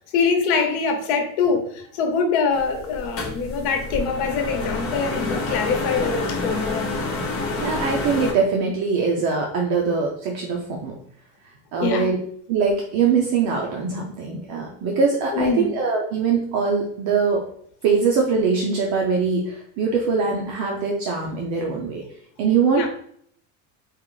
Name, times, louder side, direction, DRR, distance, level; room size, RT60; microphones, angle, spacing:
voice 1, 0.1-7.1 11.8-12.1 15.3-15.7 22.7-22.9, left 5 dB, 75° left, 4 dB, 1.1 m, -24 dB
sound 1, 2.5-8.3, left 3 dB, 35° left, 0.9 m, -28 dB
voice 2, 7.6-11.0 11.7-12.2 12.5-17.4 17.8-22.0 22.4-22.9, right 5 dB, 45° right, 0 dB, 0.6 m, -22 dB
4.5 x 2.4 x 3.8 m, 0.64 s
cardioid pair, 175°, 41 cm